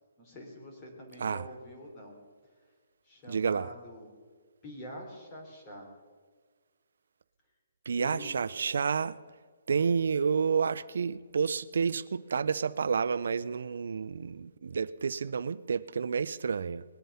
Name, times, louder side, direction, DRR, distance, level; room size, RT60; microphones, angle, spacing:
voice 1, 0.2-2.2 3.0-4.2 4.6-5.9 8.0-8.3, equal, 25° left, 0 dB, 3.7 m, -45 dB
voice 2, 3.3-3.7 7.9-9.2 9.7-16.8, right 6 dB, 75° right, 14 dB, 0.5 m, -30 dB
20.0 x 9.3 x 5.6 m, 1.5 s
hypercardioid pair, 160°, 0 cm